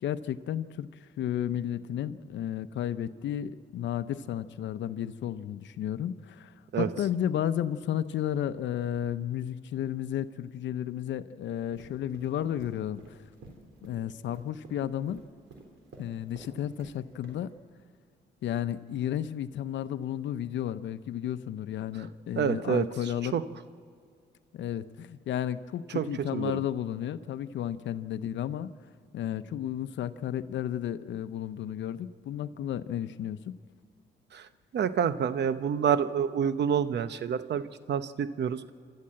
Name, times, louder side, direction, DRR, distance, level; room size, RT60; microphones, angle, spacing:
voice 1, 0.0-13.2 13.8-15.2 16.0-17.5 18.4-23.4 24.5-28.7 29.1-33.6, left 10 dB, 80° left, 13 dB, 0.7 m, -33 dB
sound 1, 11.7-17.0 17.2-17.4, right 3 dB, 85° right, 3.7 m, -50 dB
voice 2, 22.4-22.9 23.3-23.4 25.9-26.6 34.3-34.5 34.7-38.7, right 8 dB, 65° right, 12 dB, 0.9 m, -28 dB
27.5 x 13.0 x 7.7 m, 2.2 s
cardioid pair, 65°, 19 cm